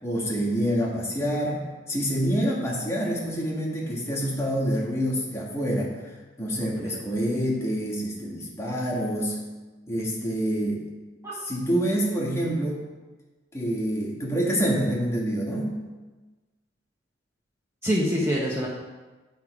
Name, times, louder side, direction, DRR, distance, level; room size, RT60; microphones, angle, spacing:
voice 1, 0.0-6.1 6.4-9.4 9.9-10.8 11.4-12.8 13.5-15.7, equal, 15° left, -4 dB, 1.4 m, -27 dB
voice 2, 6.6-7.0 11.2-11.5 11.7-11.8 17.8-18.7, equal, 15° right, -5 dB, 0.8 m, -26 dB
8.5 x 3.6 x 4.8 m, 1.2 s
head